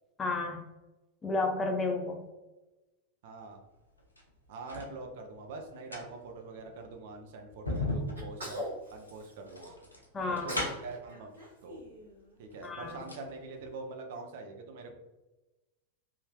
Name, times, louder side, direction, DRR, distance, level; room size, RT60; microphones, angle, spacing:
voice 1, 0.2-0.6 1.2-2.2 10.1-10.6 12.6-13.0, left 3 dB, 20° left, 2 dB, 0.4 m, -31 dB
voice 2, 3.2-3.6 4.5-9.7 10.3-11.3 11.6-11.8 12.4-14.9, right 3 dB, 55° right, 3 dB, 0.6 m, -44 dB
sound 1, 4.0-4.9 5.7-11.1 12.0-12.1 12.5-13.3 13.6-13.7, left 1 dB, 80° left, 0.6 m, -38 dB
Sneeze, 8.2-9.8 10.2-10.8 11.1-12.5, equal, 75° right, 1.4 m, -42 dB
3.5 x 2.6 x 2.2 m, 1.1 s
figure-of-eight pair, 90°, 0 cm